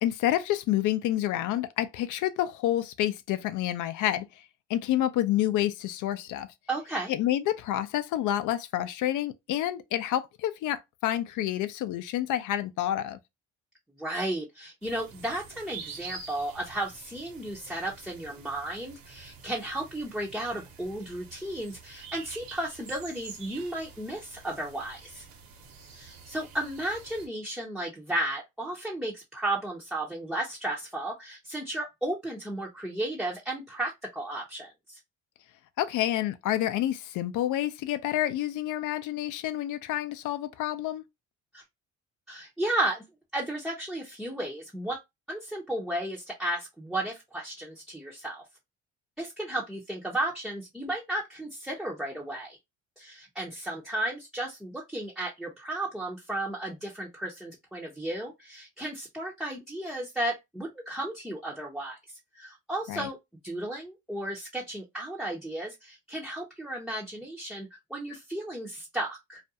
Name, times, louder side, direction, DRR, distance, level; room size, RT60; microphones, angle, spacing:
voice 1, 0.0-4.2 4.7-6.5 7.1-13.2 35.8-41.0 62.9-63.1, left 13 dB, 60° left, 0.5 m, -28 dB
voice 2, 6.7-7.1 14.0-25.2 25.9-35.0 41.5-41.6 42.3-43.0 43.3-45.0 45.3-48.4 49.2-52.6 53.0-62.0 62.3-63.2 63.4-69.4, right 1 dB, ahead, 0.6 m, -34 dB
sound 1, 14.8-27.3, right 5 dB, 75° right, 1.0 m, -47 dB
2.4 x 2.2 x 2.7 m
supercardioid pair, 90°, 34 cm